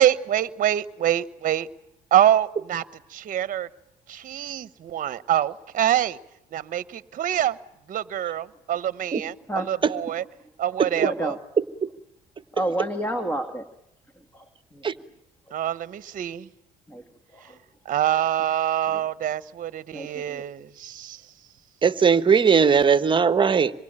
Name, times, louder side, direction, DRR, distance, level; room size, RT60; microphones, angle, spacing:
voice 1, 0.0-1.7 2.1-2.8 3.1-3.7 4.1-6.2 6.5-7.6 7.9-10.2 10.6-11.4 15.5-16.5 17.9-21.2, right 11 dB, 50° right, 16 dB, 1.1 m, -25 dB
voice 2, 11.0-11.4 12.6-13.7 14.3-14.4 14.7-14.8 16.9-17.0 17.3-17.6 18.9-19.0 19.9-20.4, right 1 dB, 10° left, 8 dB, 1.9 m, -30 dB
voice 3, 21.8-23.7, right 6 dB, 30° right, 13 dB, 1.3 m, -19 dB
26.5 x 22.5 x 8.9 m, 0.82 s
cardioid pair, 110°, 17 cm